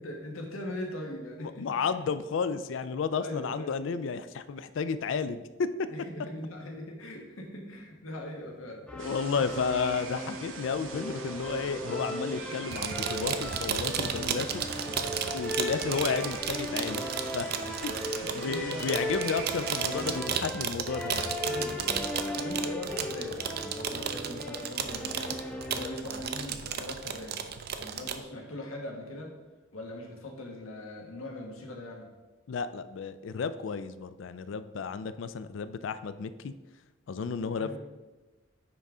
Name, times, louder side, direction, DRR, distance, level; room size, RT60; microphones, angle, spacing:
voice 1, 0.0-2.0 3.2-3.8 5.0-5.2 5.9-8.9 9.4-9.6 14.8-15.2 17.6-17.8 18.2-19.0 21.5-22.0 22.3-25.4 25.7-27.4 27.8-29.3 29.7-32.1 37.6-37.8, left 1 dB, 85° left, 1 dB, 1.3 m, -41 dB
voice 2, 1.4-5.7 8.9-14.6 15.3-17.5 17.8-21.3 32.5-36.5 37.1-37.8, left 5 dB, 65° left, 13 dB, 0.3 m, -32 dB
sound 1, 8.9-26.6, equal, 5° left, 0.5 m, -37 dB
sound 2, 9.0-20.2, right 3 dB, 75° right, 0.9 m, -42 dB
sound 3, 12.7-28.2, right 7 dB, 50° right, 0.4 m, -34 dB
9.6 x 3.5 x 3.7 m, 1.2 s
head